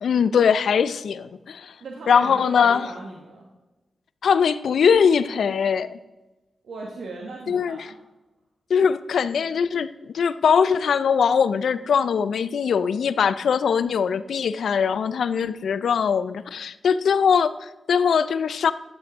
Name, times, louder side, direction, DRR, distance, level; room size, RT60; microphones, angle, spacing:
voice 1, 0.0-1.7 2.1-2.9 4.2-6.0 7.5-7.8 8.7-9.9 10.1-18.7, left 6 dB, 80° left, 14 dB, 0.4 m, -21 dB
voice 2, 1.8-3.5 6.6-8.0, right 3 dB, 80° right, 0 dB, 1.4 m, -37 dB
12.0 x 7.8 x 3.6 m, 1.1 s
supercardioid pair, 40°, 0 cm